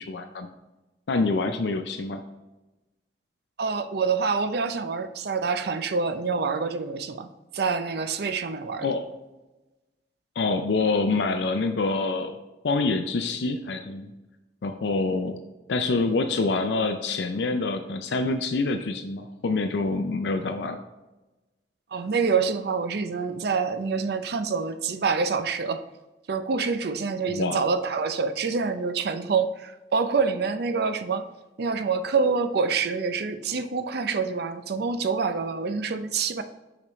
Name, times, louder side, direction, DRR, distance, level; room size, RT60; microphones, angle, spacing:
voice 1, 0.1-0.5 1.1-2.2 8.8-9.0 10.4-12.4 12.6-14.1 14.6-15.4 15.7-20.8 27.3-27.6, left 3 dB, 75° left, 6 dB, 0.5 m, -26 dB
voice 2, 3.6-7.3 7.5-8.9 21.9-25.8 26.3-31.2 31.6-36.4, right 5 dB, 65° right, 9 dB, 0.5 m, -26 dB
6.8 x 5.0 x 3.1 m, 1.1 s
head